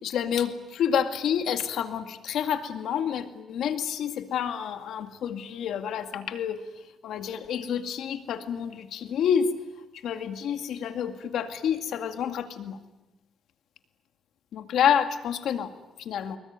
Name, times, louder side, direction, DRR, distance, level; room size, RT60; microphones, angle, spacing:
voice 1, 0.0-9.5 9.9-12.8 14.5-15.7 16.0-16.4, left 8 dB, 75° left, 7 dB, 2.2 m, -29 dB
26.0 x 22.5 x 9.5 m, 1.0 s
cardioid pair, 150°, 0 cm